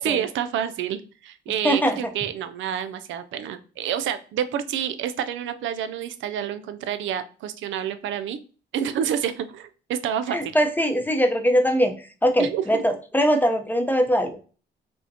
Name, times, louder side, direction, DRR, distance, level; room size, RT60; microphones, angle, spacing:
voice 1, 0.0-8.4 8.7-10.5 12.4-12.8, right 9 dB, 75° right, 11 dB, 0.4 m, -28 dB
voice 2, 1.6-2.0 10.3-11.9 12.2-14.4, equal, 10° left, 4 dB, 0.6 m, -21 dB
5.2 x 2.1 x 2.7 m, 0.37 s
cardioid pair, 90°, 20 cm